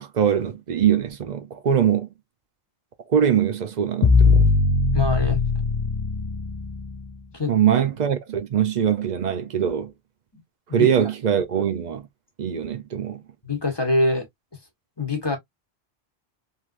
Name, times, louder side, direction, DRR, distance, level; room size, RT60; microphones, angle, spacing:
voice 1, 0.0-2.1 3.1-4.5 7.5-9.9 10.7-12.1 12.4-13.2, right 8 dB, 50° right, 0.7 m, -22 dB
sound 1, 4.0-7.1, left 4 dB, 50° left, 0.3 m, -20 dB
voice 2, 4.9-5.4 7.3-7.5 10.7-10.9 13.4-14.3 15.0-15.4, left 2 dB, 25° left, 1.0 m, -24 dB
3.3 x 2.6 x 2.4 m
omnidirectional pair, 1.1 m